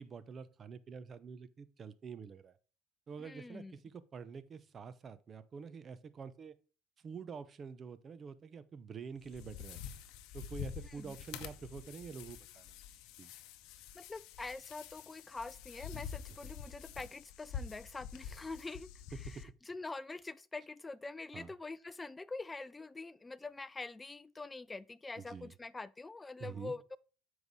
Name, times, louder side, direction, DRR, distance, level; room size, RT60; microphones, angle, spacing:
voice 1, 0.0-2.6 3.1-6.5 7.0-9.8 10.3-12.8 13.2-13.3 19.3-19.4 21.3-21.5 25.2-25.5 26.4-26.7, right 6 dB, 35° right, 0.6 m, -47 dB
voice 2, 3.2-3.8 10.8-11.2 13.9-27.0, left 3 dB, 15° left, 0.3 m, -45 dB
sound 1, 9.2-19.4, left 8 dB, 75° left, 0.7 m, -47 dB
7.1 x 4.8 x 4.0 m
cardioid pair, 110°, 0 cm